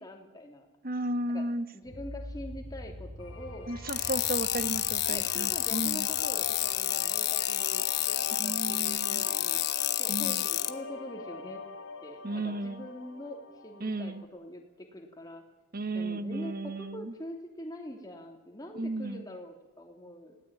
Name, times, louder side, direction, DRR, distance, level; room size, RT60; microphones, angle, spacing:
voice 1, 0.0-0.7 1.3-1.4 1.7-3.7 5.1-9.6 10.0-11.6 12.0-15.4 15.9-20.4, left 1 dB, 20° left, 1 dB, 3.1 m, -44 dB
voice 2, 0.8-1.7 3.7-6.1 8.4-9.3 10.1-10.4 12.2-12.9 13.8-14.2 15.7-17.1 18.7-19.2, right 2 dB, 45° right, 11 dB, 1.2 m, -34 dB
sound 1, 1.8-7.9, left 1 dB, 70° right, 5.2 m, -46 dB
sound 2, 3.2-14.3, left 5 dB, 85° left, 2.8 m, -42 dB
sound 3, 3.9-10.7, left 14 dB, 55° left, 1.1 m, -30 dB
25.0 x 17.5 x 9.0 m, 1.1 s
head